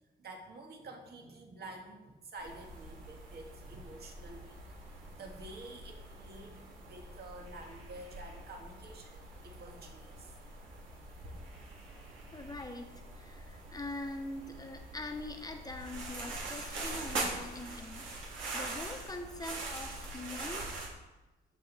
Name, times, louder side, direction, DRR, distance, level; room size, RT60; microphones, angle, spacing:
voice 1, 0.2-4.6 5.1-9.2 9.4-10.3 13.5-13.7, right 2 dB, 55° right, 2 dB, 1.9 m, -49 dB
sound 1, 2.4-20.9, right 2 dB, 75° right, 2.9 m, -43 dB
voice 2, 12.3-20.8, left 2 dB, 20° left, 4 dB, 1.3 m, -43 dB
14.5 x 5.5 x 4.2 m, 1.1 s
cardioid pair, 90°, 20 cm